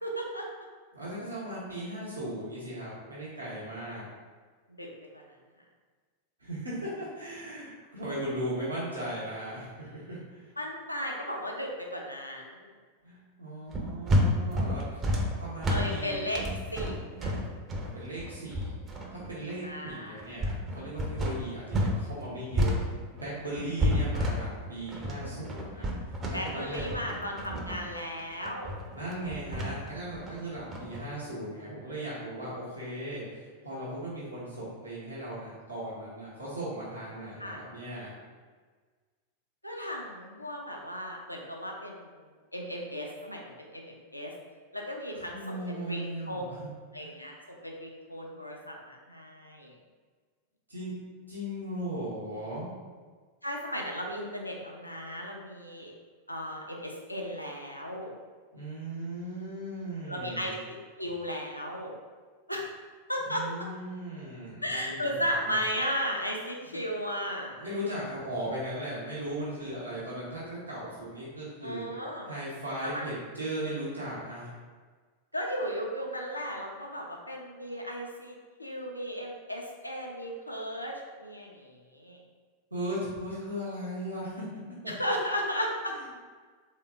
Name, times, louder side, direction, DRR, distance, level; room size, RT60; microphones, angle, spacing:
voice 1, 0.0-0.5 4.8-4.9 5.1-5.2 10.6-12.7 15.7-16.4 16.7-17.3 19.6-20.2 26.3-28.8 37.4-37.6 39.6-42.1 42.5-44.3 44.7-46.4 46.9-49.7 53.4-55.9 56.3-58.1 60.1-61.9 62.5-62.7 63.1-63.4 64.6-67.6 71.6-72.3 72.8-73.1 75.3-82.2 84.9-85.9, equal, 90° left, 0 dB, 0.5 m, -35 dB
voice 2, 0.9-4.1 6.4-10.5 13.0-15.1 15.4-16.2 17.8-18.7 19.1-25.9 26.3-26.8 28.9-38.1 45.1-46.7 47.0-47.1 50.7-50.9 51.3-52.7 58.5-60.6 63.3-65.6 66.7-66.8 67.6-71.9 72.2-74.5 82.7-84.4 84.8-85.2, right 1 dB, 80° right, -8 dB, 1.0 m, -37 dB
sound 1, 13.7-22.0 22.2-31.0, equal, 25° right, 0.5 m, -30 dB
3.4 x 2.8 x 3.3 m, 1.5 s
figure-of-eight pair, 90°, 0 cm